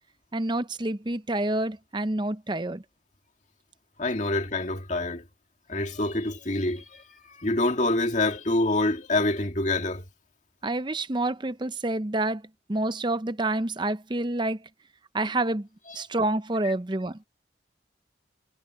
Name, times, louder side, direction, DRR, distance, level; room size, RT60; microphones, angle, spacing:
voice 1, 0.3-2.8 10.6-12.4 12.7-14.6 15.1-15.7 15.9-17.2, right 2 dB, 25° right, 0.7 m, -28 dB
voice 2, 4.0-5.2 5.7-10.0 15.9-16.0 16.6-16.7, left 2 dB, 40° left, 2.1 m, -26 dB
head